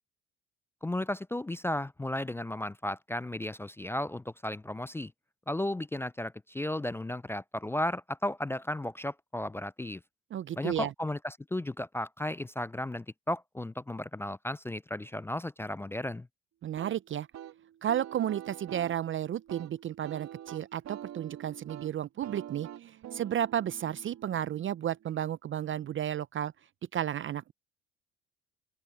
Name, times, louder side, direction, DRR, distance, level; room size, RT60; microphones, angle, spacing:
voice 1, 0.8-5.1 5.5-10.0 10.6-16.3, left 1 dB, 10° left, 0.3 m, -34 dB
voice 2, 10.3-10.9 16.6-17.3 17.8-26.5 26.9-27.5, right 10 dB, 40° right, 0.5 m, -33 dB
sound 1, 16.8-25.3, right 11 dB, 60° right, 2.1 m, -46 dB
open air
supercardioid pair, 75°, 30 cm